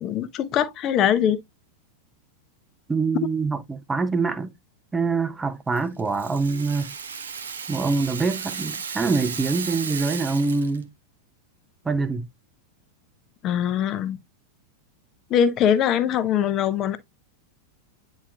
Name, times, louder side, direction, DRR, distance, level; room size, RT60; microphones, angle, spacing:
voice 1, 0.0-1.4 13.4-14.2 15.3-17.0, left 9 dB, 35° left, 0.8 m, -22 dB
voice 2, 2.9-4.5 4.9-6.9 7.7-10.9 11.8-12.3, right 4 dB, 10° right, 0.7 m, -25 dB
Rattle (instrument), 5.8-10.8, right 6 dB, 70° right, 0.8 m, -34 dB
9.6 x 4.3 x 2.3 m
figure-of-eight pair, 90°, 0 cm